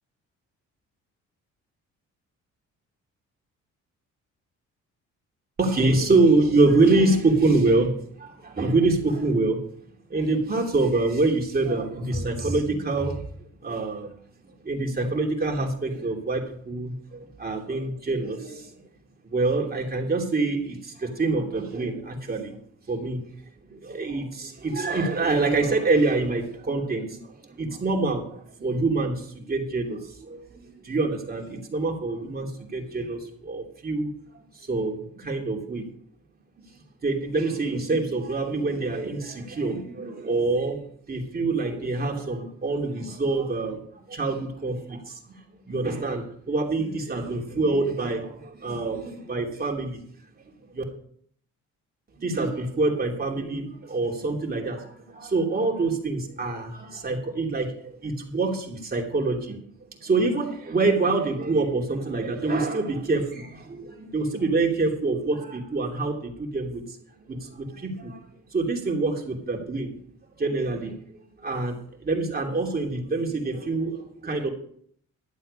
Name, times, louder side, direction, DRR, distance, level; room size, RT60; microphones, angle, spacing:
voice 1, 5.6-9.6 10.1-13.3 13.6-14.2 14.6-18.7 19.2-22.6 22.9-23.2 23.7-34.1 34.5-35.8 37.0-40.8 41.1-43.8 44.1-45.4 45.6-50.0 50.7-50.8 52.2-59.6 60.0-67.0 67.3-68.2 68.5-69.9 70.4-71.0 71.4-74.5, right 3 dB, 30° right, 1 dB, 2.9 m, -26 dB
12.0 x 7.6 x 5.6 m, 0.62 s
cardioid pair, 90°, 30 cm